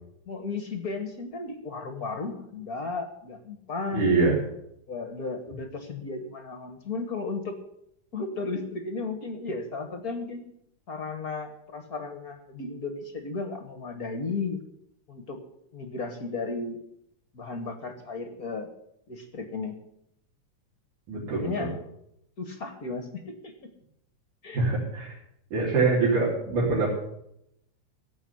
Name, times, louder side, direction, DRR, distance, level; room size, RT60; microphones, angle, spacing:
voice 1, 0.3-4.1 4.9-7.6 8.1-10.4 10.9-14.6 15.1-15.4 15.7-16.8 17.3-18.7 19.1-19.7 21.4-21.8 22.4-23.5 24.4-24.6, left 3 dB, 45° left, 6 dB, 1.2 m, -34 dB
voice 2, 3.9-4.4 21.1-21.7 24.5-25.1 25.5-26.9, right 3 dB, 85° right, -7 dB, 5.0 m, -24 dB
16.0 x 5.5 x 9.9 m, 0.77 s
omnidirectional pair, 3.4 m